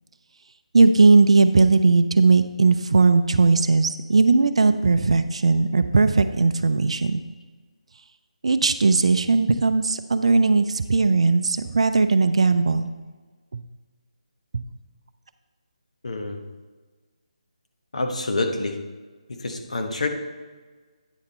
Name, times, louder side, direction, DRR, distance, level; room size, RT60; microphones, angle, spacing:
voice 1, 0.7-7.2 8.4-12.9 13.5-13.6 14.5-14.6, right 3 dB, 55° right, 10 dB, 0.5 m, -18 dB
voice 2, 16.0-16.4 17.9-18.8 19.3-20.1, left 2 dB, 65° left, 4 dB, 1.0 m, -27 dB
9.1 x 5.1 x 4.2 m, 1.3 s
figure-of-eight pair, 150°, 4 cm